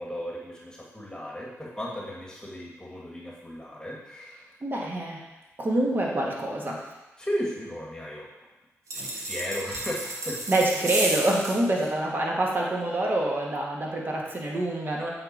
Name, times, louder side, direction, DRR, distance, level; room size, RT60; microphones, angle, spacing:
voice 1, 0.0-4.5 7.2-8.3 8.9-10.4, equal, 15° left, -3 dB, 1.5 m, -35 dB
voice 2, 4.6-5.2 5.6-6.8 10.5-15.1, right 1 dB, 40° right, -2 dB, 1.6 m, -26 dB
sound 1, 8.9-11.6, right 2 dB, 80° right, 1.2 m, -32 dB
7.8 x 3.8 x 4.0 m, 1.0 s
cardioid pair, 55°, 5 cm